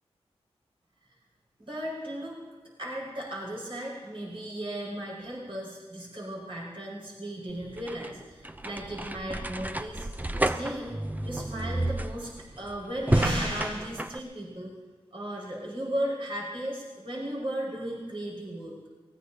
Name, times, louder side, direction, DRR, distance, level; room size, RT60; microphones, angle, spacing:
voice 1, 1.6-2.4 2.8-10.1 10.4-11.0 11.2-14.7 15.1-18.7, right 1 dB, 55° right, -4 dB, 5.8 m, -35 dB
sound 1, 7.5-14.2, right 1 dB, 15° right, 0.6 m, -31 dB
24.0 x 19.5 x 2.9 m, 1.3 s
cardioid pair, 50°, 11 cm